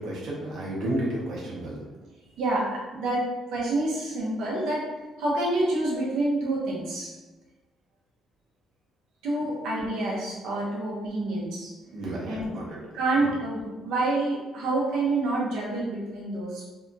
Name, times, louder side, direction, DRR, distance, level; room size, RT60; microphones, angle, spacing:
voice 1, 0.0-1.8 11.9-12.8, right 1 dB, 55° right, -5 dB, 0.7 m, -32 dB
voice 2, 2.4-3.3 3.5-4.8 5.2-7.1 9.2-11.7 12.2-12.6 12.9-16.7, right 2 dB, 85° right, -5 dB, 0.6 m, -27 dB
2.7 x 2.3 x 2.5 m, 1.2 s
cardioid pair, 175°, 0 cm